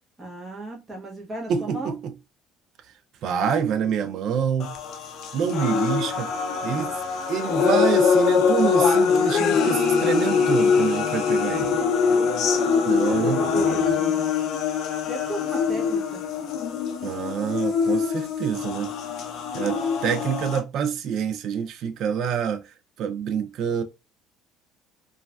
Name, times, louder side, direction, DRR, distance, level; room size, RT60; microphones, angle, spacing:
voice 1, 0.2-2.0 11.8-14.1 15.0-16.2 19.8-19.9, right 1 dB, 15° right, 0.8 m, -35 dB
voice 2, 1.5-2.1 3.2-4.8 5.3-6.3 6.6-7.0 7.3-11.8 12.9-13.8 17.0-19.0 19.5-23.8, right 7 dB, 55° right, 0.4 m, -27 dB
sound 1, 4.6-20.6, left 6 dB, 55° left, 0.5 m, -23 dB
3.1 x 2.3 x 2.2 m
cardioid pair, 135°, 0 cm